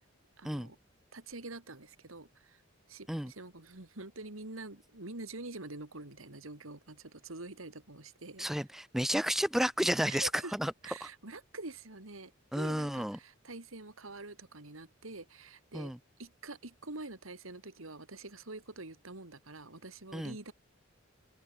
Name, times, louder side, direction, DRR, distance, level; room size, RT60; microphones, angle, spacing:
voice 1, 0.4-0.8 1.1-2.6 2.9-8.5 10.1-10.6 10.8-15.9 16.2-20.5, right 2 dB, 90° right, 2.7 m, -46 dB
voice 2, 8.4-10.7 11.0-11.1 12.5-13.2 15.7-16.0 20.1-20.4, equal, ahead, 0.4 m, -31 dB
open air
head